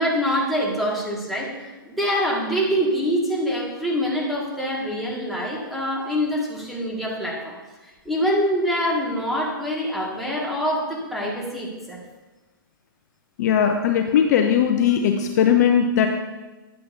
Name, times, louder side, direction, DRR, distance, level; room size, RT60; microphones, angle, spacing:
voice 1, 0.0-7.6 7.8-12.0, equal, ahead, -5 dB, 1.9 m, -25 dB
voice 2, 13.4-16.1, left 8 dB, 45° left, 5 dB, 0.6 m, -19 dB
9.7 x 7.6 x 2.7 m, 1.2 s
figure-of-eight pair, 120°, 12 cm